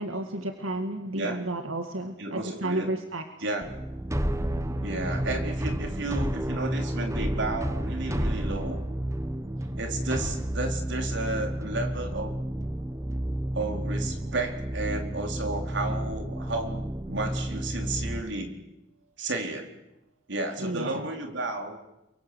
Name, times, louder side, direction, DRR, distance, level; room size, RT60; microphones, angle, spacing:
voice 1, 0.0-3.3 20.6-21.1, right 1 dB, 85° right, 6 dB, 2.0 m, -32 dB
voice 2, 1.1-1.5 2.2-2.9 3.4-3.8 4.8-8.8 9.7-12.4 13.5-18.6 19.2-19.7 20.3-21.8, right 2 dB, 60° right, 4 dB, 4.4 m, -32 dB
sound 1, 3.6-18.2, right 1 dB, 15° right, 1.2 m, -31 dB
30.0 x 23.5 x 8.1 m, 0.93 s
head